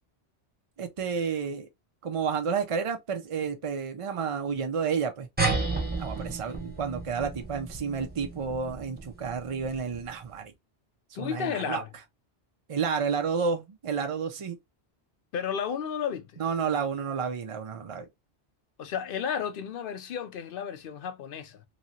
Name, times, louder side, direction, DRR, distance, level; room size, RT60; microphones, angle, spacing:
voice 1, 0.8-1.7 2.0-5.3 6.0-10.5 11.2-11.8 12.7-14.6 16.4-18.1, right 6 dB, 50° right, 0.4 m, -30 dB
sound 1, 5.4-10.3, right 3 dB, 10° right, 0.7 m, -33 dB
voice 2, 11.1-11.9 15.3-16.4 18.8-21.6, left 7 dB, 60° left, 0.7 m, -33 dB
3.0 x 2.8 x 2.6 m
omnidirectional pair, 1.2 m